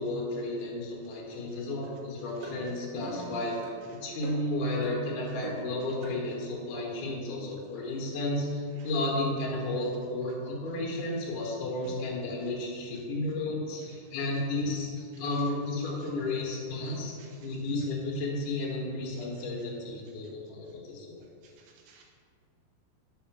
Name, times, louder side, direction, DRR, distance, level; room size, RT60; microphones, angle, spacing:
voice 1, 0.0-3.7 4.0-17.1 17.4-21.2, left 2 dB, 65° left, -3 dB, 2.3 m, -32 dB
sound 1, 1.8-2.0 2.4-2.6 3.0-3.3 3.6-3.8 4.2-4.5 4.8-5.0 5.4-5.7 6.0-6.2, right 1 dB, 70° right, 1.6 m, -40 dB
voice 2, 3.1-3.4 8.8-8.9 16.9-17.4 21.4-22.0, right 5 dB, 85° right, 1 dB, 1.8 m, -51 dB
4.9 x 4.8 x 5.9 m, 2.2 s
omnidirectional pair, 4.3 m